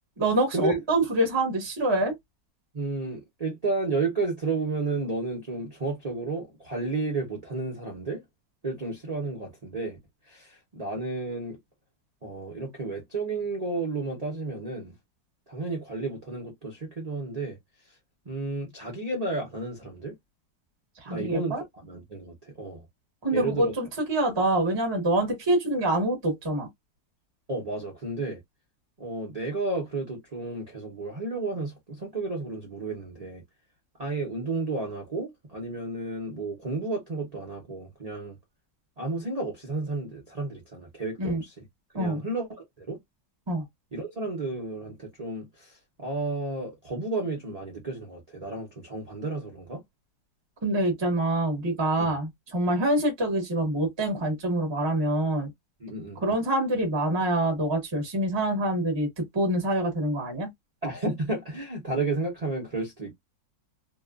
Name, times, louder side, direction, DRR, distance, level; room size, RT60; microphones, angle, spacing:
voice 1, 0.2-2.1 21.0-21.6 23.2-26.7 41.2-41.4 41.9-42.2 43.5-43.6 50.6-55.5 56.2-60.5, right 1 dB, 20° right, 0.8 m, -26 dB
voice 2, 2.7-8.2 8.6-10.0 10.3-11.6 12.2-14.9 15.5-17.6 18.3-20.1 21.1-22.8 23.3-23.7 27.5-28.4 29.0-33.4 34.0-38.4 39.0-41.5 41.9-42.5 42.8-43.0 43.9-49.8 52.0-52.2 55.8-56.2 60.8-63.1, right 3 dB, 50° right, 0.4 m, -32 dB
2.9 x 2.3 x 2.3 m
omnidirectional pair, 2.0 m